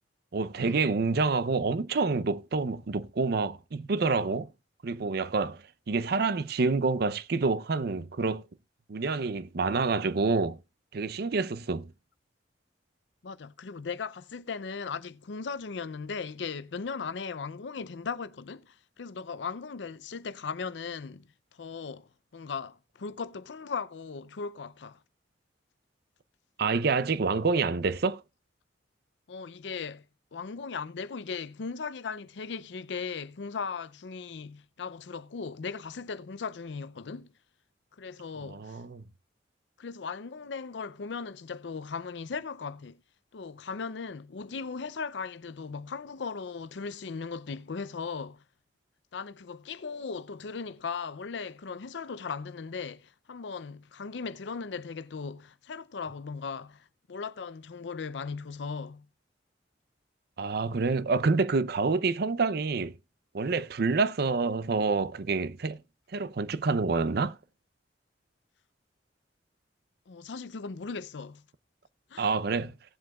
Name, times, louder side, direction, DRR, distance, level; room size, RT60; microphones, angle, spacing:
voice 1, 0.3-4.5 4.8-5.6 5.9-8.4 8.9-10.6 10.9-11.9 26.6-28.2 38.4-39.0 60.4-63.0 63.3-65.8 66.1-67.3 72.2-72.7, right 4 dB, 60° right, 0.6 m, -27 dB
voice 2, 13.2-25.0 29.3-30.0 30.3-37.3 38.0-38.8 39.8-43.0 43.3-48.4 49.1-59.1 70.1-71.4 72.1-72.4, left 5 dB, 75° left, 0.5 m, -38 dB
17.5 x 7.7 x 2.3 m
head